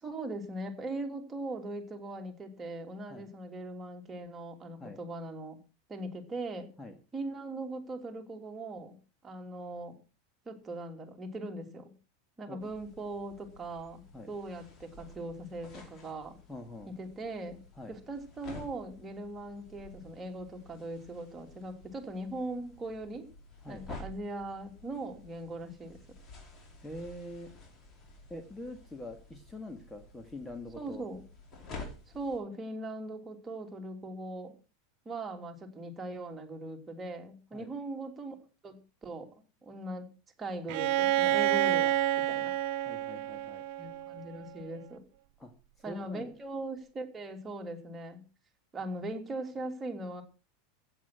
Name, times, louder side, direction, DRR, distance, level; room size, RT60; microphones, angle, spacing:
voice 1, 0.0-5.6 5.9-6.7 7.1-9.0 9.2-10.0 10.4-11.9 12.4-16.4 16.9-17.6 17.9-23.3 23.7-26.0 30.8-31.2 32.1-34.5 35.0-38.3 38.6-39.3 39.6-40.1 40.4-41.9 42.3-42.5 43.8-45.0 45.8-48.2 48.7-50.2, right 2 dB, 20° right, 4 dB, 3.0 m, -40 dB
sound 1, 12.6-32.4, left 2 dB, 30° left, 5.3 m, -51 dB
voice 2, 16.5-16.9 17.8-18.0 23.6-23.8 26.8-27.5 28.3-31.1 37.5-37.7 42.8-43.6 45.4-45.5 45.9-46.4, left 1 dB, 10° left, 6 dB, 1.8 m, -44 dB
Bowed string instrument, 40.7-44.5, right 14 dB, 50° right, 0.7 m, -29 dB
15.5 x 8.8 x 6.2 m, 0.34 s
figure-of-eight pair, 85°, 0 cm